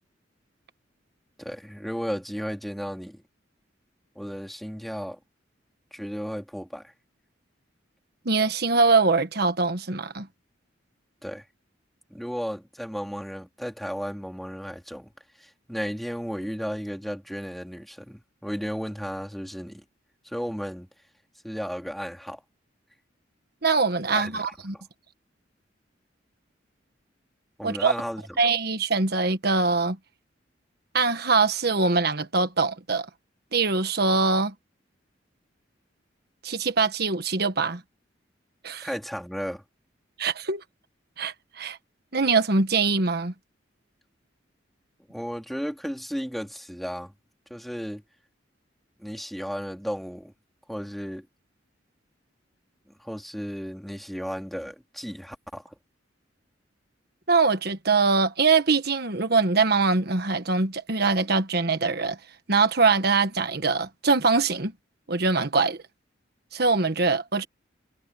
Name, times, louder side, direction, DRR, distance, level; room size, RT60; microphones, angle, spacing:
voice 1, 1.4-3.2 4.2-5.2 5.9-6.9 11.2-11.4 12.1-15.1 15.4-19.8 20.2-20.9 21.4-22.4 24.1-24.8 27.6-28.2 38.8-39.6 45.1-47.1 47.5-48.0 49.0-50.3 50.7-51.3 53.0-55.8, equal, ahead, 3.7 m, -34 dB
voice 2, 8.2-10.3 23.6-24.7 27.6-27.9 28.4-30.0 30.9-33.1 33.5-34.5 36.4-37.8 38.6-38.9 40.2-40.6 41.2-41.8 42.1-43.3 57.3-62.2 62.5-64.7 65.1-65.8 66.5-67.4, right 4 dB, 55° right, 1.4 m, -23 dB
head